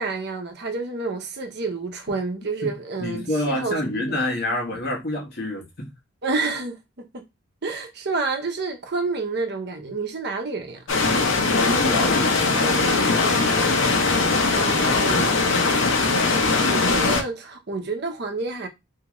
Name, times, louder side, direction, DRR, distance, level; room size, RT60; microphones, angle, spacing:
voice 1, 0.0-4.2 6.2-7.2 7.6-10.8 14.5-15.5 16.7-18.7, right 3 dB, 55° right, 0.8 m, -29 dB
voice 2, 3.0-5.9 11.5-13.9, left 1 dB, 55° left, 1.1 m, -28 dB
sound 1, 10.9-17.2, left 3 dB, 75° left, 0.7 m, -20 dB
3.6 x 2.8 x 3.0 m
head